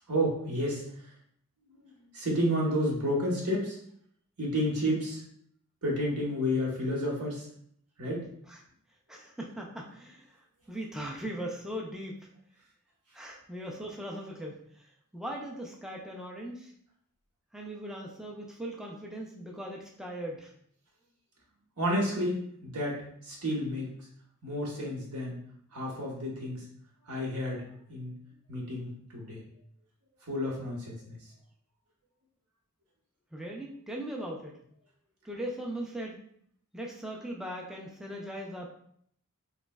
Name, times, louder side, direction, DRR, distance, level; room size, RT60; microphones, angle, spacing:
voice 1, 0.1-0.8 2.1-3.8 4.4-5.2 5.8-7.4 8.0-8.3 21.8-23.9 24.4-25.4 25.7-26.6 27.1-28.1 28.5-29.4 30.3-31.2, equal, 85° right, -2 dB, 1.1 m, -31 dB
voice 2, 9.1-12.3 13.1-16.7 17.5-20.5 33.3-34.6 35.2-36.2 36.7-38.7, right 1 dB, ahead, -1 dB, 0.3 m, -39 dB
3.2 x 3.0 x 2.2 m, 0.67 s
head